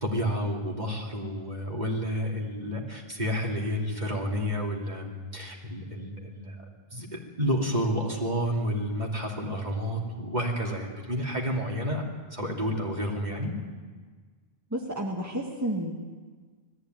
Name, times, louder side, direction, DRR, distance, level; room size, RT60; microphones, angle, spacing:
voice 1, 0.0-6.6 6.9-12.0 12.3-13.5, equal, 45° right, -1 dB, 2.9 m, -30 dB
voice 2, 14.7-15.9, right 1 dB, 15° right, -1 dB, 1.8 m, -31 dB
20.0 x 14.5 x 9.3 m, 1.5 s
omnidirectional pair, 1.1 m